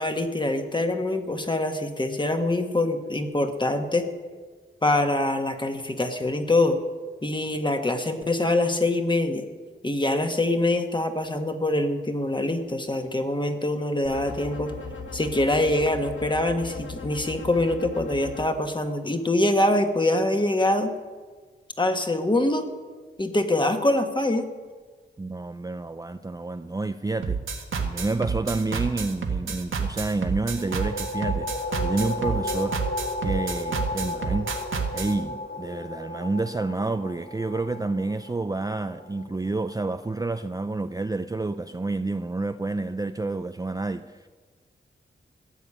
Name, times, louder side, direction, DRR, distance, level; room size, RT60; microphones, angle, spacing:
voice 1, 0.0-4.1 4.8-6.8 7.2-9.4 9.8-14.7 15.1-20.9 21.8-22.7 23.2-24.4, left 1 dB, 25° left, 6 dB, 1.5 m, -24 dB
sound 1, 14.0-18.4, left 4 dB, 80° left, 2.3 m, -38 dB
voice 2, 25.2-27.4 27.8-32.8 33.2-34.5 34.9-44.3, right 3 dB, 20° right, 9 dB, 0.5 m, -29 dB
sound 2, 27.2-35.1, right 5 dB, 90° right, 1.6 m, -29 dB
sound 3, 30.5-39.9, left 2 dB, 50° left, 1.1 m, -34 dB
15.0 x 7.2 x 9.8 m, 1.5 s
wide cardioid pair, 85°, 20 cm